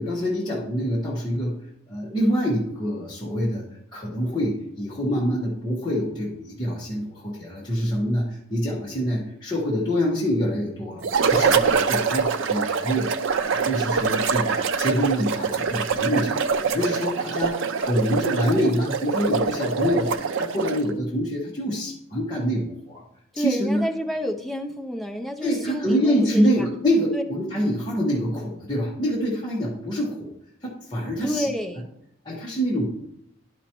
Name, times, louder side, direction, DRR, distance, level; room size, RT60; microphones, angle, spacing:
voice 1, 0.0-1.5 1.9-3.7 3.9-23.0 23.3-23.8 25.4-30.3 30.6-31.5 32.2-32.9, equal, 20° left, -7 dB, 1.2 m, -26 dB
sound 1, 11.0-20.9, right 5 dB, 65° right, 0.4 m, -24 dB
voice 2, 23.3-26.7 27.1-27.2 31.2-31.9, equal, ahead, 3 dB, 0.5 m, -29 dB
11.5 x 5.0 x 3.0 m, 0.79 s
head